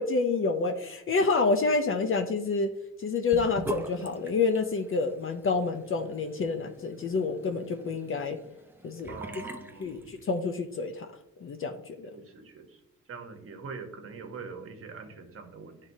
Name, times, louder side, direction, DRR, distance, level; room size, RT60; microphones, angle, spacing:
voice 1, 0.0-2.7 3.0-8.4 8.8-9.2 9.8-11.1 11.4-12.1, left 4 dB, 45° left, 6 dB, 0.5 m, -28 dB
Sink (filling or washing) / Bathtub (filling or washing), 3.3-10.6, right 2 dB, 5° right, 0.5 m, -43 dB
voice 2, 9.1-10.1 12.1-12.8 13.1-15.8, right 4 dB, 45° right, 6 dB, 1.0 m, -43 dB
9.7 x 3.7 x 2.6 m, 0.88 s
cardioid pair, 105°, 30 cm